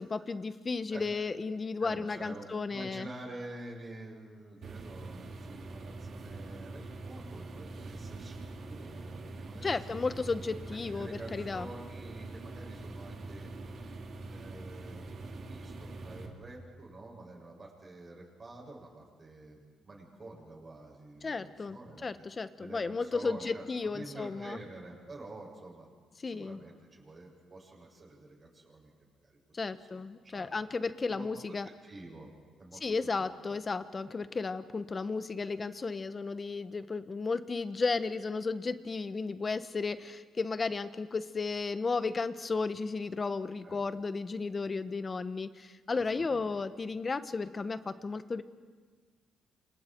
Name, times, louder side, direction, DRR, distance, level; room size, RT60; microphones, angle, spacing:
voice 1, 0.0-3.1 9.6-11.7 21.2-24.6 26.2-26.6 29.5-31.7 32.8-48.4, left 4 dB, 30° left, 12 dB, 1.2 m, -34 dB
voice 2, 1.8-9.8 10.0-10.2 10.9-13.5 14.2-15.0 15.3-22.1 22.6-25.9 26.3-28.9 29.2-29.6 30.2-30.7 31.1-31.6 31.8-32.8 33.1-33.2 33.5-33.6 43.6-43.8 45.9-46.6, right 2 dB, 30° right, -2 dB, 7.1 m, -48 dB
sound 1, 4.6-16.3, right 2 dB, 55° right, 3.2 m, -44 dB
29.0 x 26.5 x 4.7 m, 1.5 s
cardioid pair, 90°, 0 cm